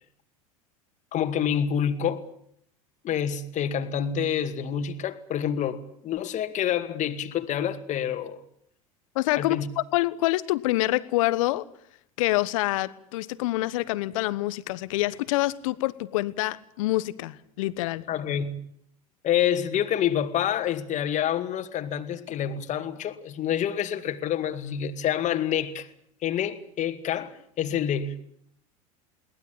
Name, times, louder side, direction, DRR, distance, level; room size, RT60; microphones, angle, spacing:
voice 1, 1.1-2.3 3.0-8.4 9.3-9.7 18.1-18.6 19.2-25.9 26.2-28.2, left 9 dB, 40° left, 2.3 m, -27 dB
voice 2, 9.1-11.6 12.2-18.0, left 18 dB, 65° left, 1.2 m, -26 dB
22.5 x 19.0 x 8.7 m
hypercardioid pair, 80°, 18 cm